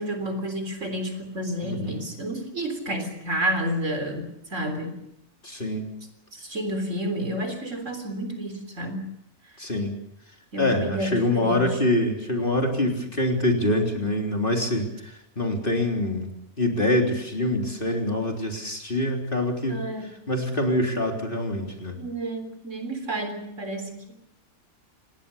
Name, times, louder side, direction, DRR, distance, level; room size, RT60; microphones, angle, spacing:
voice 1, 0.0-5.0 6.3-9.1 10.5-11.8 19.7-20.1 22.0-24.1, right 1 dB, 55° right, 7 dB, 4.1 m, -30 dB
voice 2, 1.6-2.1 5.4-5.9 9.6-9.9 10.6-16.3 16.6-19.8 20.3-22.0, left 1 dB, 35° left, 2 dB, 3.8 m, -25 dB
28.0 x 19.0 x 7.1 m, 0.79 s
omnidirectional pair, 1.6 m